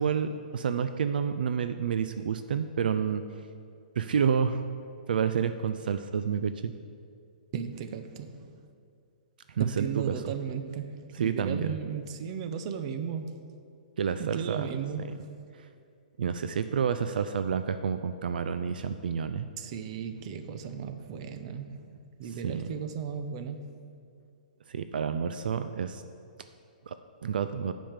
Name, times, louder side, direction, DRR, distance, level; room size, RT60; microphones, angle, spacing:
voice 1, 0.0-3.2 4.0-4.6 5.1-6.7 9.5-10.1 11.2-11.8 14.0-14.7 15.6-15.7 16.2-19.5 22.4-22.6 24.7-26.0 26.9-27.0 27.2-27.7, right 7 dB, 75° right, 10 dB, 0.4 m, -29 dB
voice 2, 7.5-8.6 9.6-13.4 14.2-15.3 19.6-23.8, right 7 dB, 40° right, 8 dB, 0.7 m, -36 dB
8.8 x 5.2 x 7.2 m, 2.4 s
hypercardioid pair, 155°, 5 cm